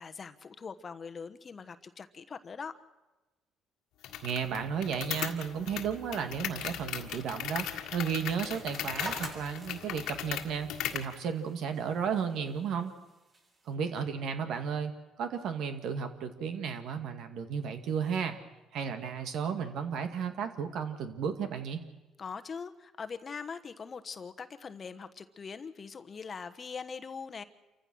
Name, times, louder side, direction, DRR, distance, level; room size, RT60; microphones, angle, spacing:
voice 1, 0.0-2.8 22.2-27.4, left 5 dB, 35° left, 11 dB, 1.2 m, -42 dB
sound 1, 4.0-11.1, left 11 dB, 75° left, 1.8 m, -38 dB
voice 2, 4.2-7.7 7.9-10.7 10.9-12.9 13.7-14.9 15.2-18.4 18.7-21.8, right 7 dB, 65° right, 7 dB, 2.1 m, -33 dB
sound 2, 8.4-13.7, right 2 dB, 40° right, 7.0 m, -48 dB
28.0 x 15.0 x 6.3 m, 1.1 s
supercardioid pair, 90°, 0 cm